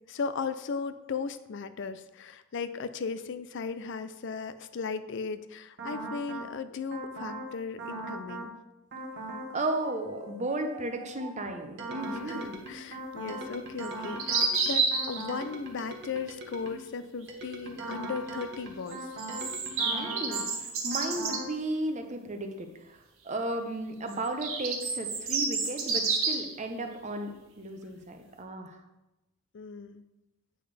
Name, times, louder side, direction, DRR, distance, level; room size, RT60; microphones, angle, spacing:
voice 1, 0.1-8.5 12.1-19.1 29.5-30.0, left 5 dB, 55° left, 12 dB, 0.4 m, -37 dB
sound 1, 5.8-6.5 6.9-7.5 7.8-8.5 8.9-9.5 9.8-16.9 17.3-20.5 20.9-21.5, right 2 dB, 55° right, 1.2 m, -40 dB
voice 2, 9.5-12.6 19.8-28.8, right 2 dB, 35° right, 5 dB, 0.8 m, -34 dB
sound 2, 13.8-15.2 18.9-21.4 24.1-26.5, right 4 dB, 70° right, 1.4 m, -29 dB
8.6 x 6.0 x 3.4 m, 0.98 s
head